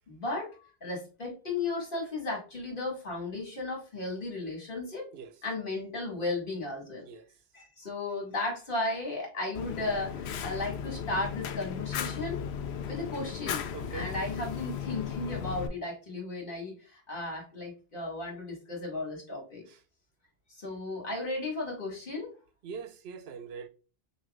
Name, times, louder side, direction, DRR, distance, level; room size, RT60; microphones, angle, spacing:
voice 1, 0.1-5.1 5.4-7.1 7.5-12.4 12.9-13.6 13.9-19.6 20.5-22.3, left 2 dB, 55° left, 2.1 m, -35 dB
voice 2, 7.0-7.3 13.7-14.1 19.7-19.8 22.6-23.7, right 6 dB, 80° right, 0.9 m, -43 dB
Fire, 9.5-15.7, left 8 dB, 90° left, 0.8 m, -36 dB
6.0 x 2.8 x 2.4 m
omnidirectional pair, 1.1 m